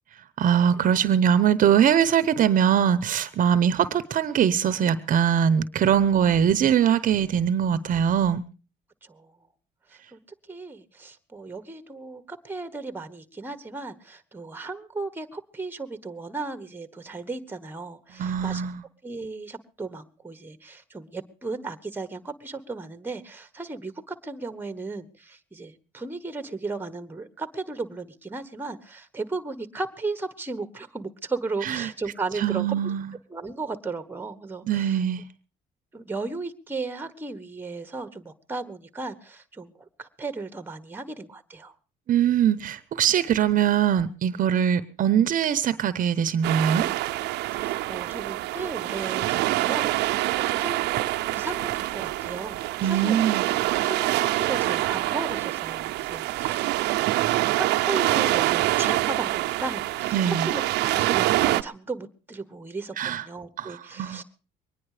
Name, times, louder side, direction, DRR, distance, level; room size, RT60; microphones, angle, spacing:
voice 1, 0.4-8.4 18.2-18.8 31.6-31.9 32.4-33.1 34.7-35.2 42.1-46.9 52.8-53.4 60.1-60.5 63.0-63.2 63.6-64.2, right 9 dB, 55° right, 0.8 m, -22 dB
voice 2, 9.0-9.3 9.9-10.2 10.5-18.6 19.0-32.7 33.3-35.0 35.9-41.7 47.6-53.2 53.8-57.0 57.6-64.2, right 3 dB, 10° right, 1.4 m, -35 dB
sound 1, 46.4-61.6, right 18 dB, 85° right, 0.6 m, -25 dB
23.0 x 9.9 x 4.9 m
cardioid pair, 110°, 17 cm